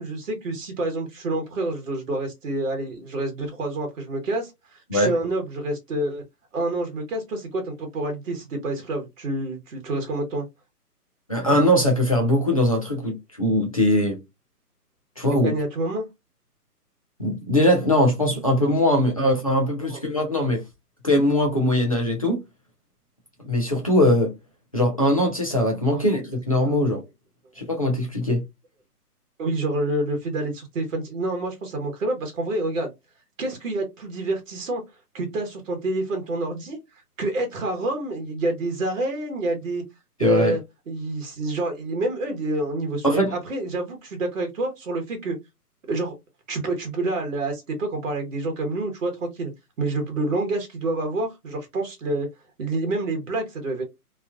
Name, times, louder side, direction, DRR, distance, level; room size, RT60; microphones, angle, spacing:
voice 1, 0.0-6.2 6.5-10.5 15.4-16.1 19.8-20.0 29.4-32.9 33.4-34.8 35.1-36.8 37.2-39.8 40.2-40.6 40.9-45.4 45.9-46.2 46.5-49.5 49.8-52.3 52.6-53.8, right 2 dB, 55° right, 1.2 m, -28 dB
voice 2, 11.3-14.2 15.2-15.5 17.2-20.6 21.0-22.4 23.4-24.3 24.7-27.0 27.6-28.4 40.2-40.5 43.0-43.3, left 1 dB, 25° left, 0.4 m, -21 dB
2.9 x 2.4 x 2.3 m
hypercardioid pair, 150°, 47 cm